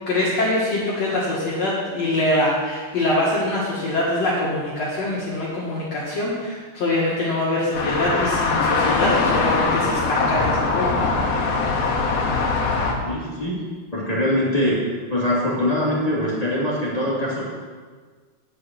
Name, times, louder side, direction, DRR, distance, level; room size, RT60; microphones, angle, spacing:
voice 1, 0.1-11.0 11.4-11.5, left 1 dB, 50° left, -6 dB, 2.2 m, -24 dB
sound 1, 7.7-12.9, left 3 dB, 70° left, 1.5 m, -21 dB
voice 2, 13.0-13.7 13.9-14.8 15.1-17.5, left 1 dB, 15° left, -7 dB, 1.6 m, -23 dB
10.0 x 6.8 x 6.8 m, 1.5 s
omnidirectional pair, 4.7 m